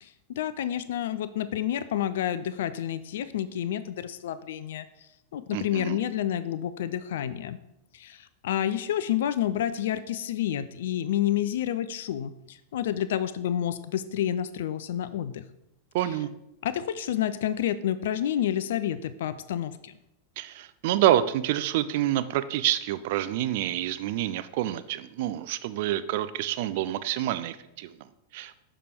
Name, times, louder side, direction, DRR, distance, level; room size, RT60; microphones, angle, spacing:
voice 1, 0.0-4.9 5.3-7.6 7.9-15.5 16.6-19.9, left 11 dB, 60° left, 13 dB, 0.3 m, -29 dB
voice 2, 5.5-6.0 15.9-16.3 20.4-28.0 28.3-28.5, right 13 dB, 50° right, 14 dB, 0.4 m, -27 dB
6.7 x 4.9 x 4.3 m, 0.85 s
figure-of-eight pair, 90°, 0 cm